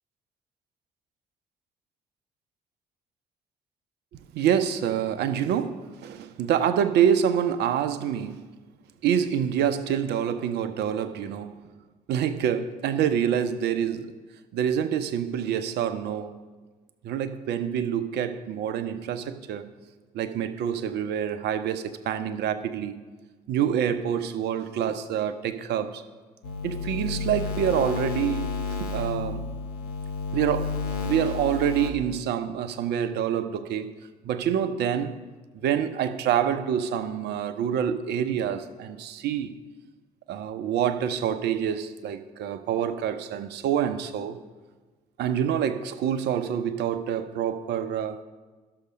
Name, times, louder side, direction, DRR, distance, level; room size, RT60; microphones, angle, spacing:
voice 1, 4.3-8.4 9.0-11.6 12.1-14.2 14.5-16.4 17.0-19.7 20.1-23.0 23.5-26.0 26.6-28.5 28.8-29.4 30.3-30.7 31.0-33.9 34.2-35.1 35.5-39.5 40.3-44.4 45.2-48.2, right 9 dB, 60° right, 0.8 m, -26 dB
sound 1, 26.4-31.9, left 4 dB, 80° left, 1.0 m, -31 dB
12.5 x 6.7 x 5.2 m
figure-of-eight pair, 45°, 19 cm